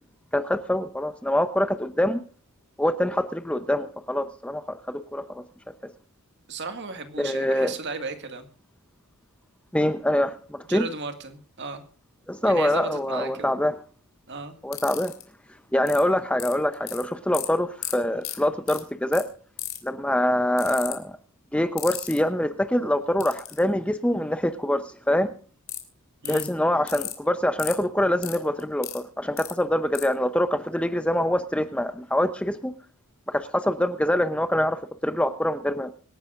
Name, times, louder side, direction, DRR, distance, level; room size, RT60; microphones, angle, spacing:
voice 1, 0.3-2.2 2.8-5.4 7.2-7.7 9.7-10.9 12.3-13.8 14.6-15.1 15.7-19.2 19.8-21.1 21.5-25.3 26.3-32.7 33.3-35.9, left 1 dB, 5° left, 10 dB, 0.7 m, -25 dB
voice 2, 6.5-8.5 10.7-11.8 12.4-13.5 14.3-14.5 26.2-26.5, right 4 dB, 50° right, 8 dB, 2.0 m, -35 dB
sound 1, 14.7-15.2 15.9-16.0 16.4-17.0 17.3-17.5 17.8-17.9 18.2-18.4 18.7-18.8 19.1-19.2 19.6-19.9 20.6-20.9 21.8-22.2 23.2-23.6 25.7-25.8 26.2-26.5 26.9-27.1 27.6-27.7 28.2-29.0 29.4-29.5 29.9-30.0, left 14 dB, 65° left, 3.0 m, -33 dB
25.0 x 10.5 x 2.5 m, 0.41 s
head